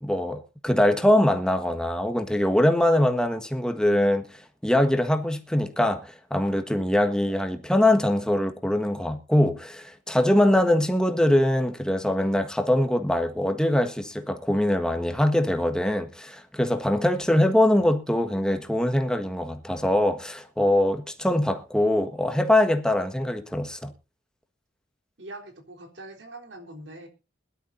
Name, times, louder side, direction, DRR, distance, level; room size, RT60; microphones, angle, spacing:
voice 1, 0.0-4.2 4.6-23.9, left 1 dB, 5° left, 1.5 m, -23 dB
voice 2, 25.2-27.1, right 2 dB, 80° right, 3.7 m, -42 dB
21.5 x 12.0 x 2.7 m
head